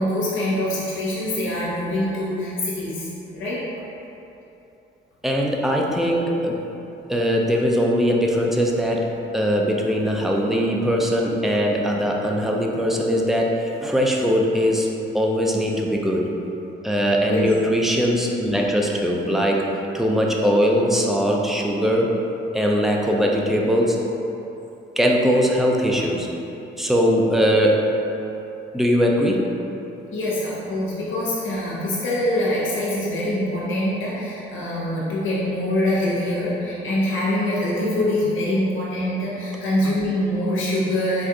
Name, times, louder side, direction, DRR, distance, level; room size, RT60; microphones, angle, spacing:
voice 1, 0.0-3.6 17.3-17.5 30.1-41.3, left 1 dB, 80° left, -7 dB, 1.0 m, -24 dB
voice 2, 5.2-6.6 7.1-14.9 15.1-16.2 16.8-19.7 19.9-22.1 22.5-24.0 25.0-26.3 26.8-27.9 28.7-29.5, equal, ahead, -1 dB, 0.5 m, -20 dB
4.3 x 2.6 x 3.7 m, 2.9 s
cardioid pair, 90°, 20 cm